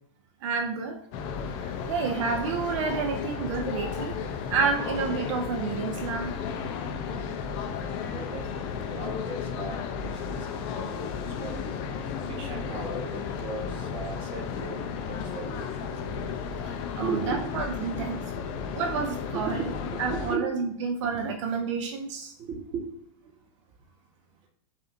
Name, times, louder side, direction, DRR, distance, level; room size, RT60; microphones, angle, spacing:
voice 1, 0.4-1.0 1.6-4.2 4.5-6.3 16.6-18.2 18.7-19.6 20.0-22.3, right 5 dB, 65° right, 3 dB, 0.5 m, -30 dB
sound 1, 1.1-20.4, left 6 dB, 40° left, 0.5 m, -34 dB
voice 2, 8.1-11.8 12.3-15.9 17.0-18.0 18.3-18.7 19.3-19.6 19.8-20.5 22.4-22.8, right 4 dB, 30° right, 1 dB, 1.0 m, -37 dB
5.5 x 2.6 x 2.7 m, 0.68 s
supercardioid pair, 145°, 17 cm